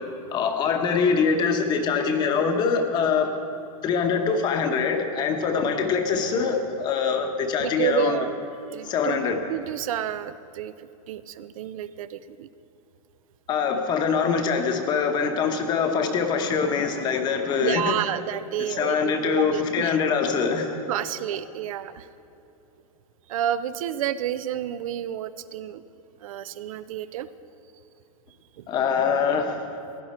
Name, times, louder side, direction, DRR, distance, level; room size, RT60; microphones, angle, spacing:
voice 1, 0.3-3.3 3.8-8.2 8.8-9.4 13.5-18.0 18.8-20.7 28.7-29.6, left 6 dB, 25° left, 6 dB, 0.9 m, -24 dB
voice 2, 7.6-12.5 17.6-20.0 20.9-22.1 23.3-25.8 26.2-27.3 28.6-28.7, right 11 dB, 70° right, 14 dB, 0.5 m, -30 dB
16.5 x 10.5 x 4.3 m, 2.9 s
supercardioid pair, 165°, 18 cm